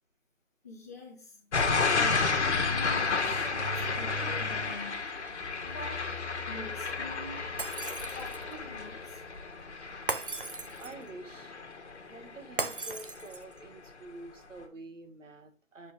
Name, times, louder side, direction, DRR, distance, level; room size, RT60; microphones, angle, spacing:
voice 1, 0.6-5.3 5.6-6.1 6.5-7.4 8.1-9.2, left 2 dB, 15° left, -3 dB, 1.0 m, -46 dB
sound 1, 1.5-12.4 12.8-13.2, left 4 dB, 60° left, 1.4 m, -31 dB
Shatter, 7.6-8.5 10.1-11.1 12.6-13.6, right 4 dB, 45° right, 0.5 m, -36 dB
voice 2, 10.8-11.5 12.1-15.9, right 2 dB, 70° right, 7 dB, 1.6 m, -47 dB
7.8 x 4.6 x 3.2 m, 0.35 s
hypercardioid pair, 170°, 39 cm